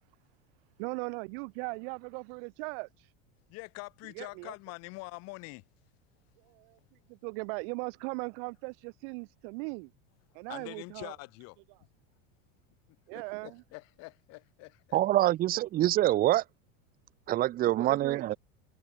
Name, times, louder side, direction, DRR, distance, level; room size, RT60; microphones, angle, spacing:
voice 1, 0.8-3.1 4.1-4.5 6.4-6.8 7.1-9.9 10.3-11.1 13.1-13.6 17.7-18.4, right 34 dB, 60° right, 1.4 m, -39 dB
voice 2, 3.5-5.6 10.5-11.6 12.9-15.0, left 26 dB, 50° left, 1.5 m, -45 dB
voice 3, 14.9-16.4 17.3-18.4, right 14 dB, 30° right, 0.6 m, -25 dB
supercardioid pair, 140°, 32 cm